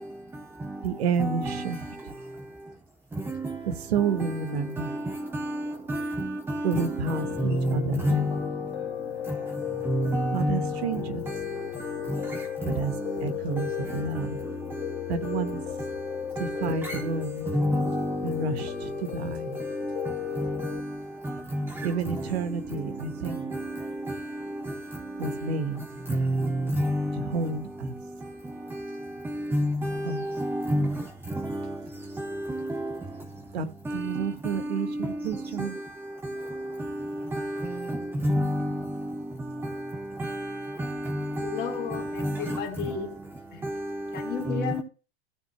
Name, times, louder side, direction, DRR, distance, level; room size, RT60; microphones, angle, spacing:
voice 1, 0.8-1.8 2.1-2.2 3.6-5.0 5.6-5.8 6.6-8.4 10.3-11.3 12.7-13.0 13.2-14.4 15.1-15.8 16.4-17.5 18.2-19.6 21.8-23.5 25.2-25.8 27.2-27.9 30.0-30.3 33.5-35.8 36.4-36.8, right 5 dB, 75° right, 1.7 m, -30 dB
Piano, 7.1-20.8, left 12 dB, 85° left, 2.1 m, -35 dB
voice 2, 7.4-7.7 8.0-8.2 9.9-10.7 16.9-17.0 17.5-18.0 20.4-20.5 21.5-21.6 26.2-26.3 26.7-27.1 29.5-29.9 30.4-30.9 37.3-37.4 38.2-38.7 40.2-40.3 41.1-41.2 42.2-42.3, equal, 5° right, 0.8 m, -25 dB
voice 3, 41.4-43.1 43.5-43.6 44.1-44.8, left 8 dB, 30° left, 3.1 m, -33 dB
16.0 x 6.5 x 2.2 m
hypercardioid pair, 120°, 32 cm